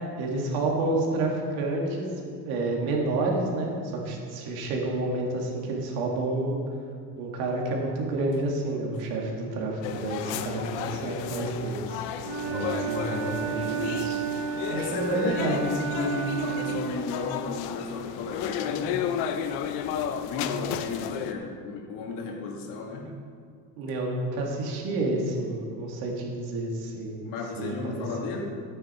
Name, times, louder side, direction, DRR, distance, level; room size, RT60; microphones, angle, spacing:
voice 1, 0.2-2.1 2.5-6.6 7.2-12.0 12.5-14.2 14.7-15.6 23.8-27.2 27.6-28.0, right 2 dB, 90° right, -1 dB, 2.3 m, -29 dB
sound 1, 9.8-21.3, left 9 dB, 90° left, 0.8 m, -33 dB
Wind instrument woodwind instrument, 12.2-16.8, right 8 dB, 70° right, 2.2 m, -32 dB
voice 2, 14.7-19.1 20.2-23.1 27.2-28.6, left 4 dB, 60° left, 1 dB, 1.9 m, -34 dB
13.5 x 9.5 x 4.4 m, 2.3 s
cardioid pair, 175°, 37 cm